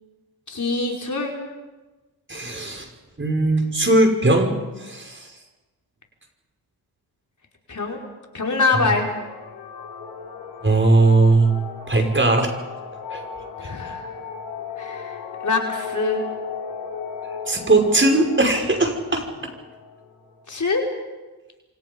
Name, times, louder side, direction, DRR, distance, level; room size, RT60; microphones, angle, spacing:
voice 1, 0.5-1.3 7.7-8.0 8.3-9.1 13.6-14.0 14.8-16.2 20.5-20.8, left 3 dB, 45° left, 0 dB, 5.2 m, -24 dB
voice 2, 2.3-2.9 3.2-5.3 10.6-11.6 11.9-12.5 13.1-13.2 17.5-19.2, right 2 dB, 30° right, 3 dB, 5.8 m, -19 dB
sound 1, 8.9-20.7, left 6 dB, 85° left, 6.2 m, -36 dB
27.0 x 26.0 x 5.5 m, 1.2 s
supercardioid pair, 45°, 41 cm